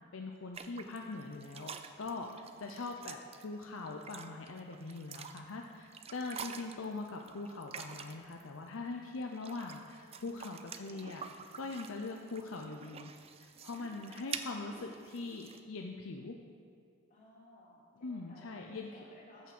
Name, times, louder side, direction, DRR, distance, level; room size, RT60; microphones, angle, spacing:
voice 1, 0.1-13.1 13.4-16.4 18.0-18.9 19.4-19.5, left 3 dB, 70° left, 2 dB, 0.6 m, -42 dB
wet cloth, 0.5-8.4 9.1-15.6, right 6 dB, 30° right, 0.4 m, -48 dB
voice 2, 2.5-3.2 12.1-12.4 13.7-14.4 14.8-15.0 17.1-19.5, left 1 dB, 40° left, -4 dB, 2.5 m, -59 dB
14.5 x 5.9 x 6.1 m, 2.3 s
head